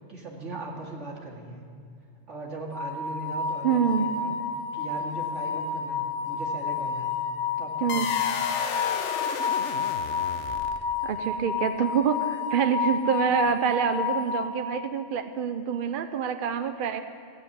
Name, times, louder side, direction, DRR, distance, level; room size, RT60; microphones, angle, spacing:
voice 1, 0.1-1.6 2.3-4.4 4.7-7.1 7.6-8.2 13.3-13.4, right 2 dB, 85° right, -1 dB, 2.4 m, -39 dB
sound 1, 2.7-14.9, left 5 dB, 45° left, 3.8 m, -30 dB
voice 2, 3.6-4.1 7.8-8.1 11.0-17.0, right 7 dB, 55° right, 8 dB, 0.8 m, -26 dB
sound 2, 7.9-11.0, left 7 dB, 80° left, 1.1 m, -32 dB
15.5 x 7.8 x 9.9 m, 2.4 s
omnidirectional pair, 1.2 m